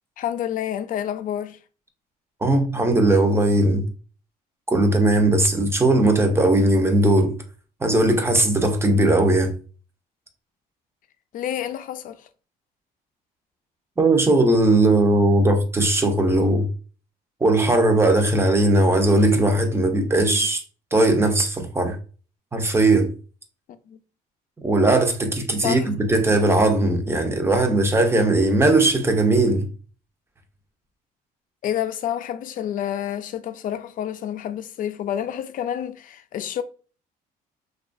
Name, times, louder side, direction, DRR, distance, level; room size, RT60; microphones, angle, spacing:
voice 1, 0.2-1.6 11.3-12.3 20.3-20.4 23.9-24.0 25.6-25.9 31.6-36.6, left 10 dB, 55° left, 0.4 m, -29 dB
voice 2, 2.4-3.9 4.7-7.4 7.8-9.5 14.0-16.7 17.4-20.6 20.9-22.0 22.5-23.1 24.6-29.7, right 2 dB, 15° right, 0.6 m, -18 dB
2.8 x 2.3 x 2.5 m
cardioid pair, 110°, 17 cm